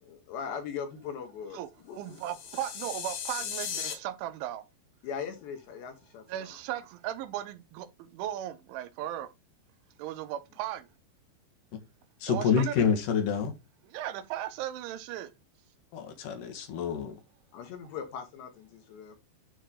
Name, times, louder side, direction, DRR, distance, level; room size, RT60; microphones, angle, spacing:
voice 1, 0.0-2.2 3.4-3.5 5.0-6.6 17.5-19.2, left 7 dB, 75° left, 3.6 m, -40 dB
voice 2, 2.0-4.6 6.3-9.3 10.0-10.9 12.3-12.7 13.9-15.3, right 12 dB, 90° right, 3.3 m, -36 dB
sound 1, 2.1-3.9, left 8 dB, 90° left, 4.4 m, -37 dB
voice 3, 12.2-13.5 15.9-17.2, left 6 dB, 60° left, 2.7 m, -27 dB
9.6 x 4.7 x 3.8 m
omnidirectional pair, 5.3 m